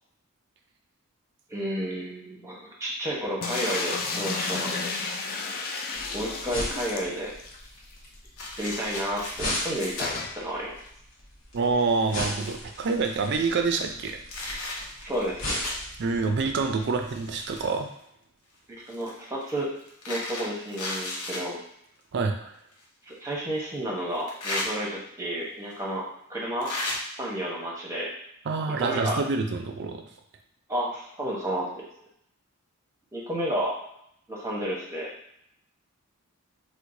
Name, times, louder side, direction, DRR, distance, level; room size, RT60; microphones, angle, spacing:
voice 1, 1.5-4.9 6.1-7.3 8.6-10.8 14.9-15.6 18.7-19.7 20.1-21.6 23.1-26.7 27.1-28.1 28.8-29.2 30.7-31.7 33.1-33.7 34.3-35.1, equal, 15° right, -4 dB, 0.8 m, -31 dB
sound 1, 3.4-7.6 7.9-8.0 8.2-8.3 10.0-10.4, left 4 dB, 45° left, 0.4 m, -32 dB
sound 2, 5.9-17.7, left 1 dB, 60° left, 1.1 m, -38 dB
sound 3, 8.4-10.1 10.8-10.9 11.6-11.7 11.9-13.3 13.9-15.9 16.8-17.9 18.9-21.4 22.7-22.8 24.1-24.7 25.7-25.8 26.6-27.0, left 2 dB, 85° left, 0.8 m, -35 dB
voice 2, 11.5-14.2 16.0-17.9 22.1-22.6 28.5-30.0, right 4 dB, 50° right, 5 dB, 0.4 m, -27 dB
4.5 x 2.1 x 2.6 m, 0.74 s
head